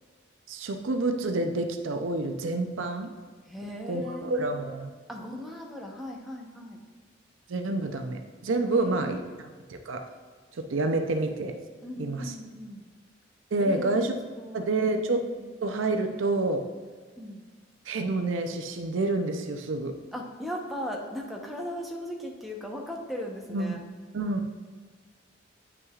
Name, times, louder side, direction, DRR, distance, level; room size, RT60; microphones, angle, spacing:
voice 1, 0.5-3.1 3.9-4.9 7.5-10.0 10.5-11.5 12.0-12.4 13.5-14.1 14.5-15.2 15.6-16.7 17.9-20.0 23.5-23.8 24.1-24.4, right 2 dB, 80° right, 6 dB, 0.5 m, -28 dB
voice 2, 3.5-4.7 5.1-6.8 8.7-9.2 11.8-12.8 13.6-15.5 17.2-17.4 20.1-23.8, left 1 dB, ahead, -1 dB, 0.8 m, -38 dB
9.4 x 5.8 x 2.4 m, 1.5 s
head